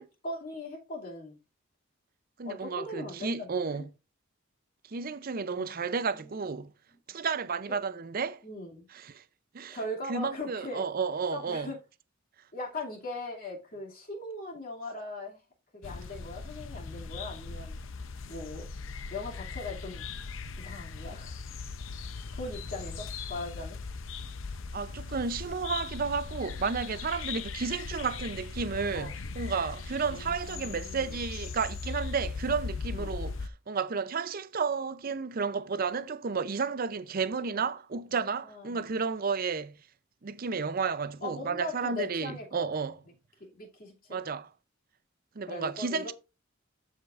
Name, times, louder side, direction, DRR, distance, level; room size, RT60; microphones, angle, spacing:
voice 1, 0.0-1.4 2.4-3.9 5.5-6.5 8.4-8.9 9.7-10.8 11.3-11.8 12.5-15.4 15.7-17.8 18.3-18.7 19.1-20.0 20.6-21.3 22.3-23.8 28.9-29.1 30.1-31.0 32.9-33.2 37.6-37.7 38.1-38.9 41.2-42.5 43.4-44.2 45.5-46.1, left 2 dB, 45° left, 2.5 m, -40 dB
voice 2, 2.4-3.9 4.9-6.7 7.1-8.4 8.9-9.2 9.5-9.8 10.1-11.7 24.7-39.8 40.2-43.0 44.1-44.5 45.3-46.1, right 5 dB, 45° right, 0.5 m, -32 dB
sound 1, 15.8-33.5, left 4 dB, 75° left, 0.6 m, -39 dB
13.0 x 5.0 x 2.5 m
head